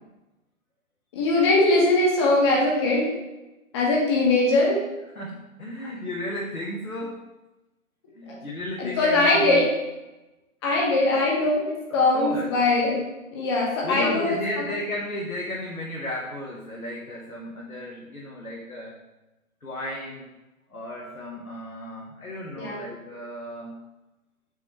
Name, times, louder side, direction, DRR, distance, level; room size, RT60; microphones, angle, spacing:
voice 1, 1.1-3.1 3.7-4.8 8.3-8.4 8.8-9.7 10.6-13.0 13.3-14.7 22.6-22.8, left 2 dB, 20° left, -4 dB, 0.9 m, -21 dB
voice 2, 5.1-7.3 8.2-9.6 11.9-12.5 13.8-19.0 19.6-20.3 20.7-23.8, left 1 dB, 80° left, -3 dB, 1.3 m, -34 dB
7.1 x 3.2 x 5.6 m, 1.0 s
figure-of-eight pair, 135°, 42 cm